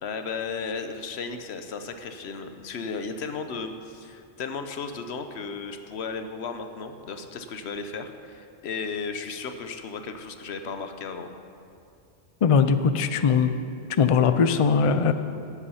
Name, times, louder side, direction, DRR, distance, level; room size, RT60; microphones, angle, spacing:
voice 1, 0.0-11.3, left 5 dB, 75° left, 8 dB, 1.0 m, -35 dB
voice 2, 12.4-13.5 14.0-15.1, left 6 dB, 50° left, 10 dB, 0.4 m, -20 dB
12.5 x 8.4 x 5.6 m, 2.5 s
omnidirectional pair, 1.1 m